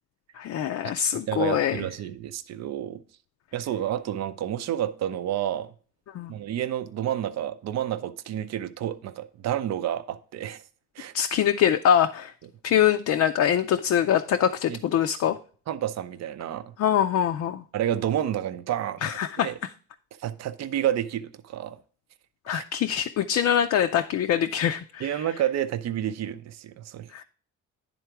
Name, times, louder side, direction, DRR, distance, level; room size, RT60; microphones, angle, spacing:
voice 1, 0.4-1.8 6.1-6.3 11.1-12.3 12.6-15.4 16.8-17.6 19.0-19.5 22.5-25.2 27.1-27.2, left 9 dB, 60° left, 0.5 m, -24 dB
voice 2, 1.3-3.0 3.5-5.7 6.3-10.6 11.0-11.1 14.7-14.8 15.7-16.7 17.7-19.6 20.2-21.8 22.5-22.6 25.0-27.2, right 11 dB, 60° right, 0.6 m, -30 dB
10.0 x 3.8 x 4.6 m
cardioid pair, 90°, 30 cm